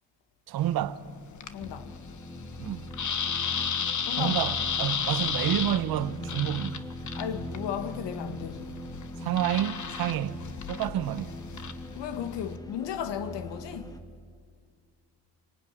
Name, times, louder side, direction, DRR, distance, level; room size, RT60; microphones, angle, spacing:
voice 1, 0.5-1.0 2.6-2.9 4.2-6.8 9.2-11.4, right 12 dB, 55° right, 0.9 m, -29 dB
sound 1, 0.6-12.6, left 7 dB, 40° left, 1.4 m, -34 dB
voice 2, 1.5-1.9 4.1-4.5 7.1-8.8 11.9-13.9, left 9 dB, 70° left, 1.6 m, -35 dB
sound 2, 1.6-14.0, left 1 dB, 10° left, 1.6 m, -40 dB
25.5 x 18.5 x 9.8 m
cardioid pair, 105°, 45 cm